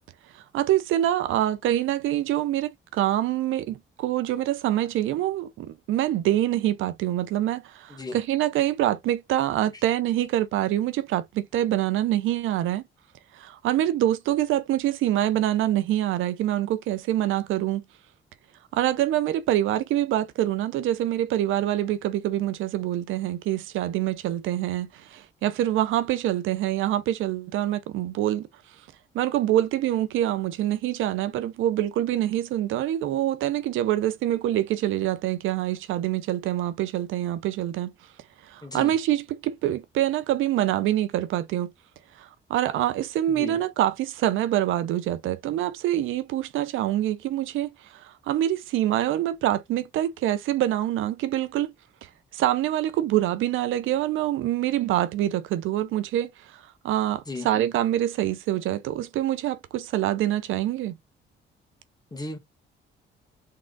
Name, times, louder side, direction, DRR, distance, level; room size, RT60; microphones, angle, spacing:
voice 1, 0.3-12.8 13.3-17.8 18.7-28.5 29.1-37.9 38.4-41.7 42.2-51.7 52.0-60.9, right 13 dB, 85° right, 0.6 m, -25 dB
voice 2, 38.6-38.9 43.3-43.6 57.3-57.5 62.1-62.4, left 2 dB, 20° left, 1.7 m, -35 dB
3.8 x 3.2 x 3.9 m
cardioid pair, 90°, 20 cm